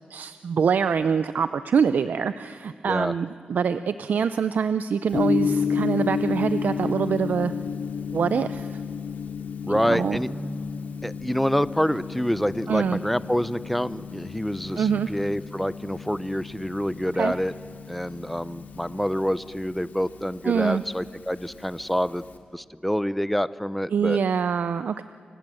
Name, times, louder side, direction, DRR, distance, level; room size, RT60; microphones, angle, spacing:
voice 1, 0.1-7.5 8.1-8.8 9.7-10.2 12.7-13.0 14.8-15.1 17.1-17.3 20.4-20.8 23.9-25.0, right 6 dB, 70° right, 12 dB, 0.6 m, -24 dB
Gong, 5.1-22.4, left 6 dB, 75° left, 2.7 m, -32 dB
voice 2, 9.6-10.3 11.0-17.5 17.9-22.2 22.5-24.2, equal, 5° left, 16 dB, 0.6 m, -27 dB
29.5 x 25.5 x 7.8 m, 2.4 s
wide cardioid pair, 130°, 3 cm